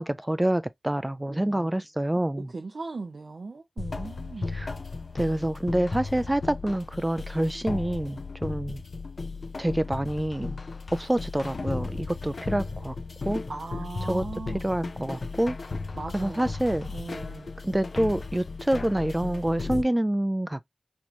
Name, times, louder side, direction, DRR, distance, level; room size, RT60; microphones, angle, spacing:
voice 1, 0.0-2.5 4.5-4.7 5.1-8.8 9.6-10.6 10.9-13.0 13.2-13.4 14.1-14.2 14.6-15.6 16.1-16.9 17.6-20.7, right 1 dB, 20° right, 0.3 m, -27 dB
voice 2, 1.3-1.7 2.3-4.7 13.5-14.6 15.9-16.6 16.9-17.5, right 3 dB, 85° right, 0.6 m, -39 dB
sound 1, 3.8-19.8, left 3 dB, 80° left, 0.6 m, -35 dB
4.4 x 3.0 x 2.8 m
cardioid pair, 45°, 0 cm